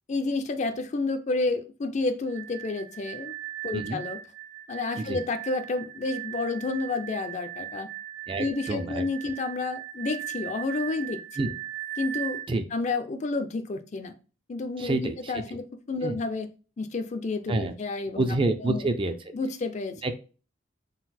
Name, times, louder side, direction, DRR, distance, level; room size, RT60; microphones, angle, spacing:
voice 1, 0.1-3.3 3.6-4.2 4.7-7.9 8.4-11.2 12.0-12.4 12.7-14.1 14.5-16.5 16.8-18.3 18.6-18.9 19.3-20.0, left 3 dB, 40° left, 9 dB, 0.4 m, -30 dB
sound 1, 2.3-12.5, right 13 dB, 70° right, 0.6 m, -38 dB
voice 2, 8.3-9.0 11.4-11.5 12.5-12.6 14.8-15.6 16.0-16.2 17.5-17.7 18.1-19.1 20.0-20.1, right 2 dB, 25° right, 8 dB, 0.4 m, -28 dB
3.8 x 2.4 x 4.2 m, 0.35 s
head